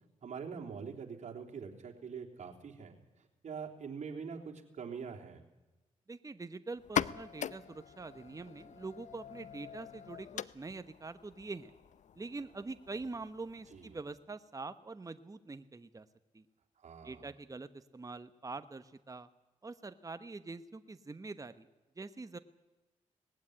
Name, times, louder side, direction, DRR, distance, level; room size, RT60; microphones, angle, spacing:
voice 1, 0.2-5.4 13.7-14.0 16.8-17.3, right 6 dB, 65° right, 2 dB, 3.5 m, -44 dB
voice 2, 6.1-11.7 12.1-16.1 16.3-16.4 17.0-19.3 19.6-21.7 22.0-22.4, right 3 dB, 25° right, 11 dB, 1.1 m, -44 dB
sound 1, 6.8-14.2, left 9 dB, 65° left, 0.7 m, -42 dB
19.5 x 15.5 x 10.0 m, 1.1 s
cardioid pair, 65°, 13 cm